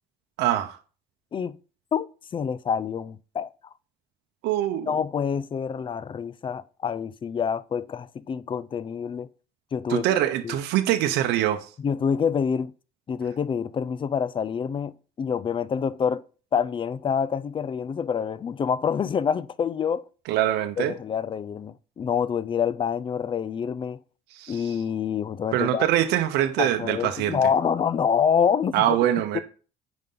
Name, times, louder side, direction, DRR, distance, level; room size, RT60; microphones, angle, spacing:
voice 1, 0.4-0.8 4.4-5.0 9.9-11.7 20.3-21.0 24.3-24.8 25.5-27.4 28.7-29.4, right 12 dB, 85° right, 0.8 m, -24 dB
voice 2, 2.3-3.5 4.9-9.3 9.7-10.1 10.4-10.6 11.8-12.7 13.1-14.9 15.2-16.2 16.5-20.0 20.8-24.0 24.5-25.9 26.6-29.0 29.3-29.4, left 7 dB, 30° left, 0.4 m, -26 dB
9.3 x 5.3 x 3.8 m
cardioid pair, 110°, 17 cm